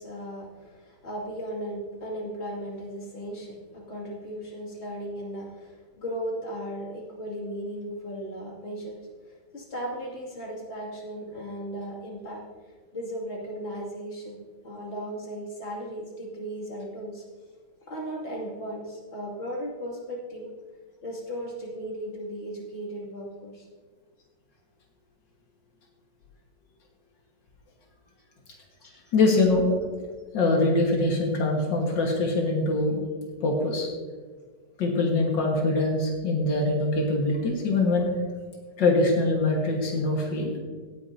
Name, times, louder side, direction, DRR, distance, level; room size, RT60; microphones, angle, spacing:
voice 1, 0.0-9.0 9.2-12.5 12.9-17.2 17.9-20.5 21.0-23.7 28.8-29.1, equal, 35° left, -3 dB, 2.7 m, -36 dB
voice 2, 29.1-29.7 30.3-33.0 33.4-33.9 34.8-38.1 38.8-40.5, left 2 dB, 80° left, 0 dB, 2.3 m, -23 dB
17.5 x 9.6 x 2.8 m, 1.5 s
omnidirectional pair, 1.9 m